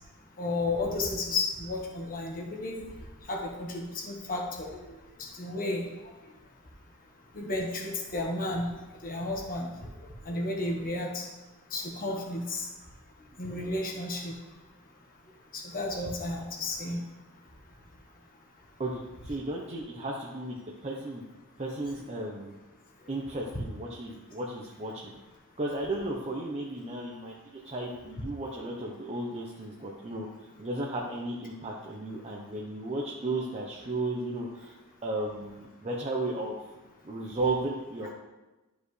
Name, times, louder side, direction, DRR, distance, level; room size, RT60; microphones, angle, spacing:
voice 1, 0.4-2.8 3.3-4.8 5.2-5.9 7.3-8.7 9.0-9.7 10.2-11.3 11.7-12.7 13.4-14.3 15.5-17.0 26.0-26.1, left 2 dB, 40° left, 0 dB, 1.4 m, -32 dB
voice 2, 18.8-21.2 21.6-22.5 23.1-25.1 25.6-30.3 30.6-34.7 35.0-36.5 37.0-38.1, right 2 dB, 30° right, -3 dB, 0.8 m, -34 dB
11.5 x 5.2 x 3.3 m, 1.1 s
head